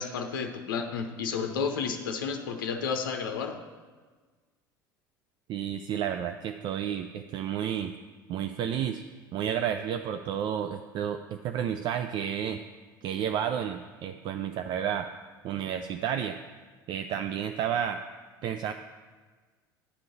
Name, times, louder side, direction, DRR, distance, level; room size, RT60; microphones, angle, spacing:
voice 1, 0.0-3.6, left 6 dB, 70° left, 5 dB, 0.7 m, -31 dB
voice 2, 5.5-7.9 8.3-9.0 9.3-12.6 13.0-15.1 15.4-16.4 16.9-18.0 18.4-18.7, right 9 dB, 40° right, 7 dB, 0.4 m, -31 dB
10.0 x 3.8 x 7.3 m, 1.4 s
figure-of-eight pair, 65°, 11 cm